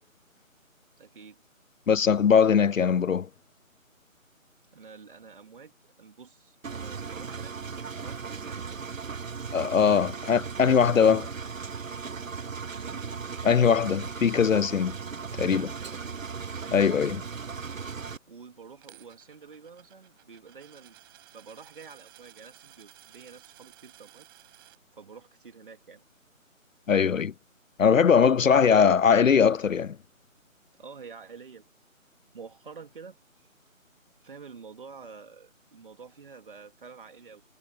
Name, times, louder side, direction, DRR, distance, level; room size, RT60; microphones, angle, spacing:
voice 1, 1.0-1.4 4.7-8.7 10.0-10.5 12.7-13.1 15.3-16.2 16.5-17.0 18.3-21.0 21.3-24.3 24.9-26.0 28.0-28.6 30.8-31.7 32.3-33.5 34.2-37.4, right 5 dB, 40° right, 3.4 m, -48 dB
voice 2, 1.9-3.3 9.5-11.2 13.4-15.0 15.4-15.7 16.7-17.2 26.9-27.3 27.8-30.0, left 7 dB, 70° left, 0.6 m, -21 dB
Engine, 6.6-18.2, right 5 dB, 70° right, 1.0 m, -37 dB
Coin (dropping), 18.8-24.8, right 18 dB, 15° right, 7.7 m, -55 dB
figure-of-eight pair, 155°, 41 cm